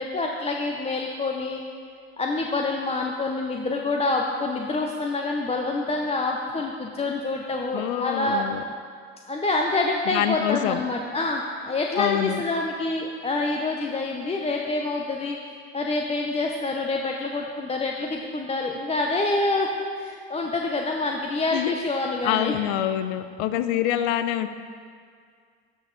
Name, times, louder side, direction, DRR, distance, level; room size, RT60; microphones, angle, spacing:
voice 1, 0.0-1.6 2.2-8.5 9.3-15.4 15.7-22.6, left 2 dB, 20° left, 1 dB, 0.6 m, -27 dB
voice 2, 7.7-8.6 10.1-10.8 11.9-12.4 21.5-21.7 22.2-24.5, left 12 dB, 85° left, 12 dB, 0.5 m, -25 dB
12.0 x 5.4 x 3.8 m, 2.1 s
supercardioid pair, 85°, 33 cm